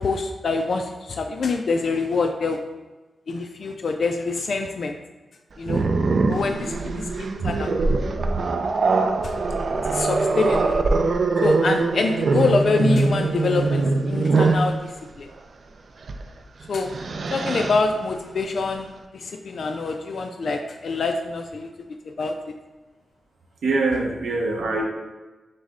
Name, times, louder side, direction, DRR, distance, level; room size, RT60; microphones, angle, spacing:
voice 1, 0.0-2.6 3.3-5.0 5.6-5.8 6.3-7.7 9.2-9.4 9.8-10.8 11.4-15.3 16.7-16.9 17.3-21.7 22.1-22.3, left 4 dB, 55° left, 4 dB, 0.3 m, -25 dB
Growling, 5.7-14.7 16.0-16.2 16.6-17.8, right 3 dB, 50° right, 0.3 m, -22 dB
voice 2, 23.6-24.8, right 3 dB, 85° right, 0 dB, 0.8 m, -23 dB
6.3 x 2.1 x 3.6 m, 1.2 s
wide cardioid pair, 150°, 0 cm